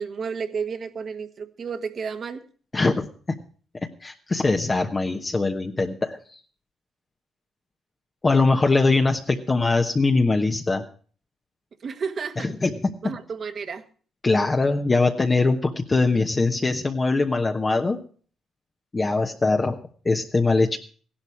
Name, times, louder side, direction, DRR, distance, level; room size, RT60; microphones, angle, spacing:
voice 1, 0.0-2.4 11.8-12.5 13.0-13.8, right 5 dB, 50° right, 8 dB, 1.5 m, -31 dB
voice 2, 2.7-3.4 4.0-6.4 8.2-10.8 12.4-12.9 14.2-18.0 18.9-19.8 20.0-20.8, left 3 dB, 25° left, 3 dB, 1.1 m, -22 dB
15.5 x 11.5 x 4.7 m, 0.42 s
cardioid pair, 90°, 0 cm